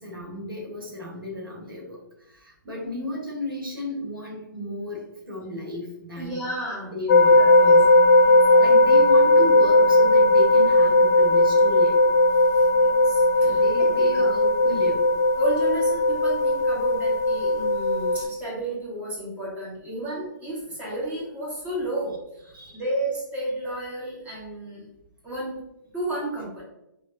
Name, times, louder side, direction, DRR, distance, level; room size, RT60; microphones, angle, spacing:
voice 1, 0.0-2.0 2.4-6.4 6.8-7.9 8.6-11.9 13.4-15.0 22.5-22.8, left 1 dB, 90° right, -2 dB, 1.1 m, -34 dB
voice 2, 6.2-7.0 7.3-7.8 8.3-8.7 12.5-14.3 15.4-24.9 25.2-25.6 25.9-26.6, right 1 dB, 15° right, -6 dB, 1.3 m, -32 dB
sound 1, 7.1-18.2, left 1 dB, 55° left, 0.4 m, -18 dB
4.5 x 2.1 x 2.2 m, 0.86 s
figure-of-eight pair, 120°, 11 cm